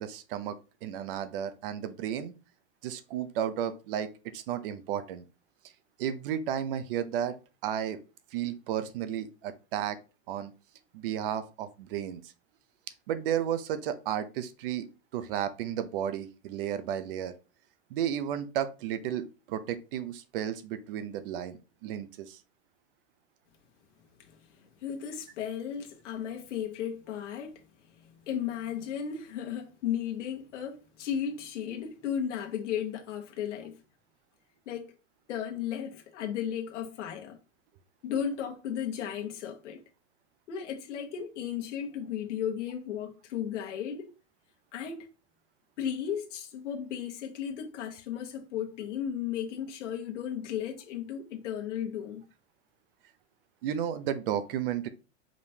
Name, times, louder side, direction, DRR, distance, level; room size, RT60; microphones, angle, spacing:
voice 1, 0.0-2.3 2.8-4.1 4.3-5.2 6.0-7.4 7.6-8.0 8.3-10.0 10.3-10.5 10.9-12.3 13.1-17.3 17.9-22.4 53.6-54.9, right 10 dB, 50° right, 0.6 m, -33 dB
voice 2, 24.6-27.6 28.0-33.8 34.7-34.9 35.3-37.4 38.0-39.8 40.5-44.1 44.7-45.1 45.8-52.3, left 9 dB, 85° left, 1.2 m, -35 dB
5.0 x 3.4 x 2.8 m
supercardioid pair, 160°, 35 cm